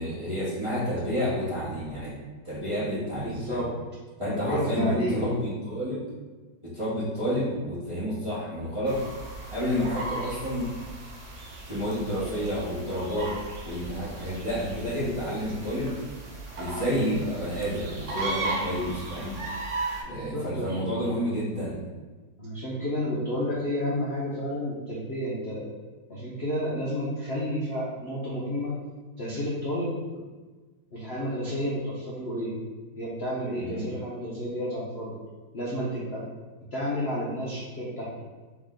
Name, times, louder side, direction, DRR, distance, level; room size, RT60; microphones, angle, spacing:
voice 1, 0.0-2.1 2.4-3.6 4.2-6.0 6.6-9.0 9.5-10.7 11.6-13.4 13.6-15.9 16.6-19.3 20.0-21.8 33.6-33.8, equal, 20° right, -10 dB, 1.0 m, -30 dB
voice 2, 3.2-3.7 4.3-5.3 20.1-20.8 22.4-25.7 26.1-28.8 29.2-29.9 30.9-32.5 32.9-35.2 35.5-36.3 36.7-38.1, equal, 55° left, -7 dB, 0.7 m, -31 dB
sound 1, 8.9-20.0, right 2 dB, 55° right, 0.8 m, -36 dB
3.5 x 3.5 x 3.7 m, 1.3 s
omnidirectional pair, 2.1 m